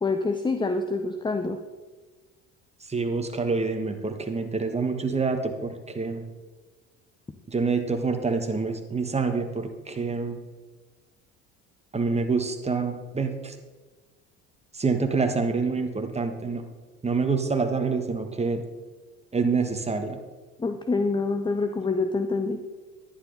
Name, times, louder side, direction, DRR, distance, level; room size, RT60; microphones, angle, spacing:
voice 1, 0.0-1.6 20.6-22.6, left 3 dB, 15° left, 7 dB, 0.7 m, -26 dB
voice 2, 2.9-6.3 7.5-10.4 11.9-13.5 14.7-16.6 17.0-18.6 19.3-20.2, right 4 dB, 20° right, 6 dB, 1.5 m, -27 dB
11.0 x 10.0 x 4.0 m, 1.3 s
hypercardioid pair, 70°, 35 cm